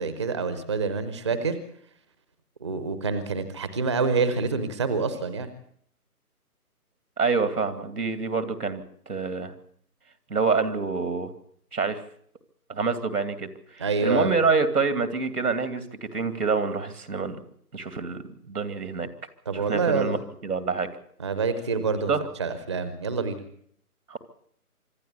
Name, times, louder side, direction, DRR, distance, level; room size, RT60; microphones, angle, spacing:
voice 1, 0.0-1.6 2.6-5.5 13.8-14.3 19.5-20.2 21.2-22.1 22.4-23.4, right 4 dB, 20° right, 12 dB, 0.7 m, -27 dB
voice 2, 7.2-9.5 10.3-11.3 11.7-12.0 12.7-13.5 14.0-17.4 17.7-19.1 19.5-20.2 20.4-20.9 22.1-22.2 24.1-24.2, right 4 dB, 85° right, 10 dB, 2.7 m, -26 dB
25.5 x 12.0 x 8.3 m, 0.65 s
figure-of-eight pair, 155°, 45 cm